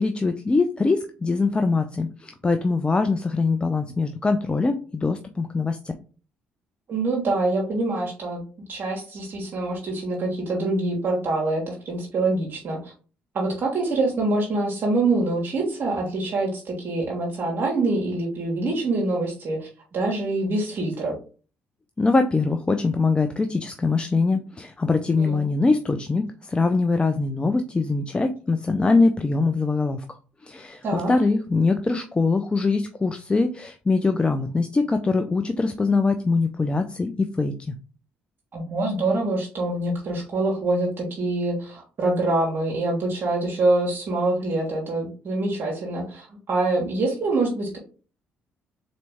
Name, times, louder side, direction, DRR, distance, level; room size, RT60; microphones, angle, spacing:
voice 1, 0.0-5.8 22.0-30.0 30.4-37.7, left 3 dB, 25° left, 7 dB, 0.5 m, -23 dB
voice 2, 6.9-8.4 8.7-12.9 13.3-21.2 25.2-25.4 30.8-31.1 38.5-47.8, right 2 dB, 50° right, -2 dB, 1.4 m, -25 dB
3.9 x 3.2 x 3.5 m, 0.37 s
supercardioid pair, 65°, 4 cm